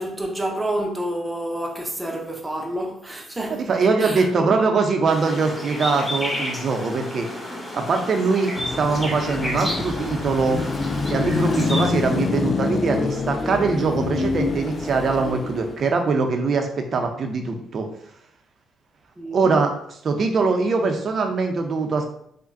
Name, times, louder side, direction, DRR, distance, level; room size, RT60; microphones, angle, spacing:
voice 1, 0.0-3.7 4.0-4.6 19.2-19.5, right 1 dB, 15° right, 0.7 m, -29 dB
voice 2, 3.7-7.3 7.7-10.6 11.1-17.9 19.3-19.7 20.0-22.1, right 4 dB, 55° right, 0.6 m, -22 dB
sound 1, 5.1-11.9, left 1 dB, 20° left, 1.4 m, -31 dB
Car passing by / Traffic noise roadway noise / Engine, 8.6-15.9, left 4 dB, 40° left, 0.3 m, -26 dB
4.9 x 2.2 x 2.6 m
cardioid pair, 90°, 0 cm